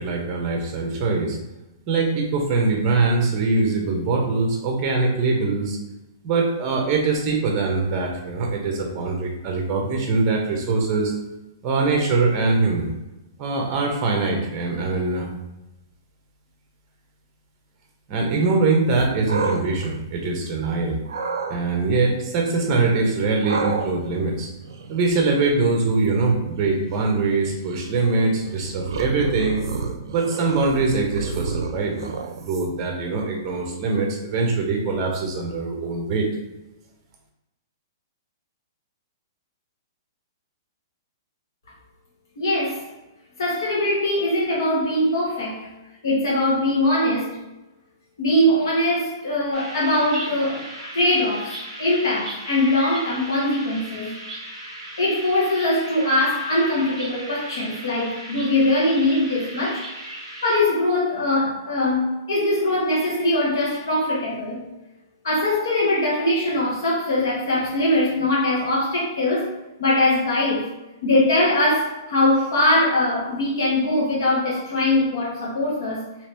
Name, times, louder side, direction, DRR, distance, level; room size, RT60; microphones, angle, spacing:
voice 1, 0.0-1.4 1.9-5.8 6.2-11.1 11.6-12.9 13.4-15.3 18.1-21.0 21.5-24.5 24.9-29.6 30.0-32.1 32.4-36.3, right 3 dB, 25° right, 1 dB, 0.6 m, -22 dB
sound 1, 18.9-20.6 21.1-21.6 23.4-32.9, right 4 dB, 75° right, 0.5 m, -31 dB
voice 2, 42.4-42.8 43.4-45.6 46.0-47.4 48.2-50.6 50.9-54.1 55.0-59.9 60.4-64.6 65.2-69.5 69.8-70.7 71.0-76.0, left 1 dB, 75° left, -5 dB, 1.2 m, -21 dB
sound 2, 49.5-60.6, right 1 dB, ahead, 1.0 m, -37 dB
2.9 x 2.7 x 3.4 m, 1.0 s
hypercardioid pair, 175°, 2 cm